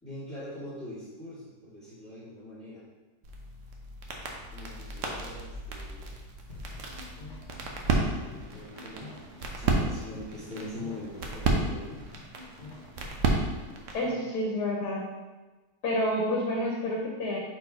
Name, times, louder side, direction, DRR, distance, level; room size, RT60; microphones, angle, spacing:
voice 1, 0.0-2.8 4.5-6.2 7.8-9.2 9.5-12.1 14.0-14.2, left 1 dB, 5° left, -14 dB, 1.7 m, -43 dB
sound 1, 3.2-14.1, right 3 dB, 55° right, 1.0 m, -33 dB
sound 2, 6.5-13.7, left 3 dB, 50° left, 1.4 m, -48 dB
voice 2, 13.9-15.1 15.8-17.4, left 1 dB, 70° left, -2 dB, 1.4 m, -29 dB
4.7 x 4.3 x 4.7 m, 1.2 s
omnidirectional pair, 1.8 m